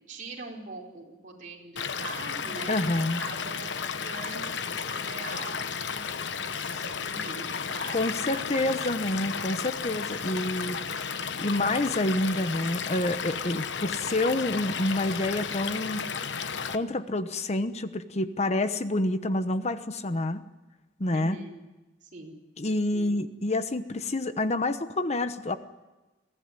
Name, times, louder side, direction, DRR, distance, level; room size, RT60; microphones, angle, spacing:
voice 1, 0.1-3.7 4.0-8.5 21.1-21.6 22.0-22.3 22.9-23.1, right 2 dB, 45° right, -3 dB, 4.5 m, -43 dB
Stream / Liquid, 1.8-16.8, left 6 dB, 70° left, 1.0 m, -33 dB
voice 2, 2.7-3.2 7.9-10.8 11.4-16.0 16.7-20.4 21.0-21.4 22.6-25.6, left 2 dB, 35° left, 11 dB, 1.0 m, -28 dB
23.0 x 15.5 x 9.7 m, 1.1 s
head